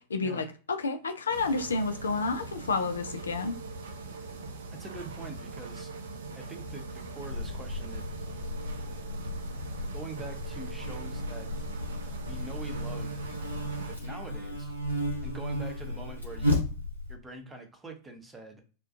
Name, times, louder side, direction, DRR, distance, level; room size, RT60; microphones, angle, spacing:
voice 1, 0.1-3.6, left 4 dB, 70° left, 7 dB, 0.3 m, -30 dB
sound 1, 1.3-14.0, right 3 dB, 65° right, 0.4 m, -41 dB
voice 2, 4.7-5.9 6.3-8.1 9.9-11.6 12.3-13.3 13.9-14.7 15.2-16.5 17.1-18.6, right 3 dB, 15° right, 4 dB, 0.7 m, -44 dB
Buzz, 7.2-17.1, left 1 dB, 85° right, 0.8 m, -34 dB
2.3 x 2.1 x 2.5 m, 0.37 s
figure-of-eight pair, 90°, 0 cm